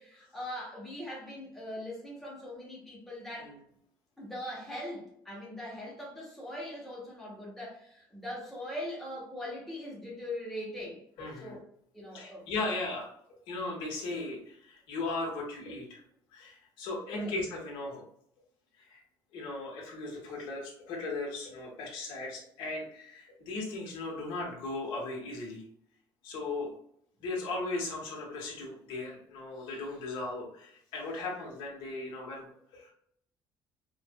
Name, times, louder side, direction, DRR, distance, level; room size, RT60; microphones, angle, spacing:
voice 1, 0.0-3.6 4.2-11.0 11.4-11.6 11.9-12.5 17.1-17.3, left 1 dB, ahead, -5 dB, 1.0 m, -41 dB
voice 2, 11.2-11.6 12.1-13.1 13.5-16.0 16.3-18.0 18.9-19.0 19.3-25.6 26.2-26.7 27.2-32.9, left 2 dB, 80° left, -3 dB, 1.4 m, -37 dB
4.5 x 2.5 x 2.2 m, 0.69 s
cardioid pair, 180°, 9 cm